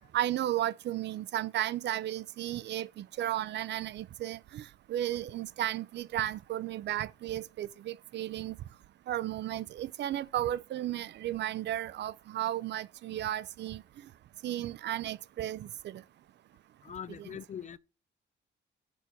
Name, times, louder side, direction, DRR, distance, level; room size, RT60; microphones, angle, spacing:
voice 1, 0.1-4.6 4.9-8.5 9.1-13.8 14.4-16.0, right 12 dB, 60° right, 0.5 m, -34 dB
voice 2, 16.8-17.8, left 8 dB, 40° left, 0.4 m, -42 dB
7.1 x 4.4 x 6.0 m
cardioid pair, 90°, 20 cm